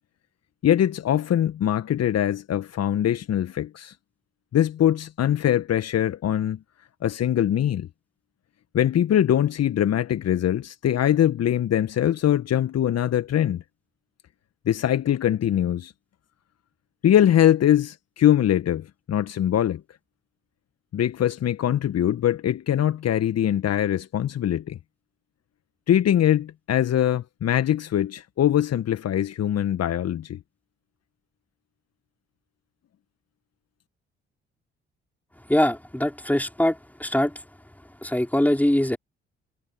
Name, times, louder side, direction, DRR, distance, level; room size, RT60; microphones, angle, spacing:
voice 1, 0.6-3.9 4.5-6.6 7.0-7.9 8.7-13.6 14.6-15.9 17.0-19.8 20.9-24.8 25.9-30.4, left 11 dB, 50° left, 1.7 m, -22 dB
voice 2, 35.5-37.3 38.0-39.0, left 1 dB, 5° left, 5.0 m, -22 dB
figure-of-eight pair, 40°, 32 cm